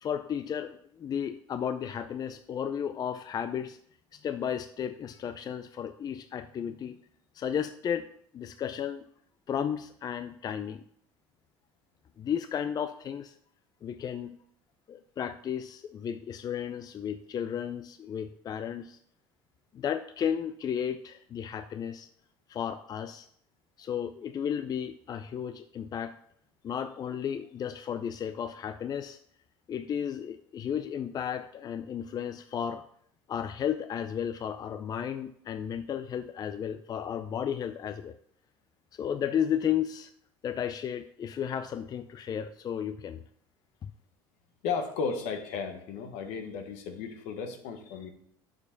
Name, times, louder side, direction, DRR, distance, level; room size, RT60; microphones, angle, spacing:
voice 1, 0.0-3.8 4.1-7.0 7.3-8.1 8.3-9.0 9.5-10.8 12.2-13.3 13.8-14.4 14.9-19.0 19.7-22.1 22.5-23.3 23.8-26.2 26.6-29.2 29.7-32.8 33.3-38.1 38.9-40.1 40.4-43.2 43.8-43.9, left 8 dB, 35° left, 10 dB, 0.5 m, -33 dB
voice 2, 44.6-48.1, left 5 dB, 75° left, 6 dB, 1.4 m, -34 dB
6.8 x 4.8 x 6.9 m, 0.65 s
supercardioid pair, 95°, 11 cm